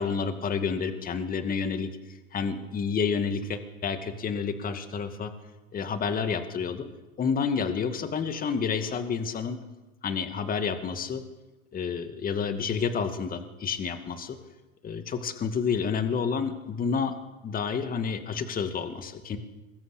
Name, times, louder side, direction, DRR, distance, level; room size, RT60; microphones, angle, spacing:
voice 1, 0.0-1.9 2.3-5.3 5.7-6.9 7.2-9.6 10.0-11.2 11.7-14.4 14.8-17.2 17.4-19.4, left 6 dB, 20° left, 8 dB, 2.2 m, -29 dB
24.5 x 21.5 x 8.5 m, 1.2 s
supercardioid pair, 135°, 42 cm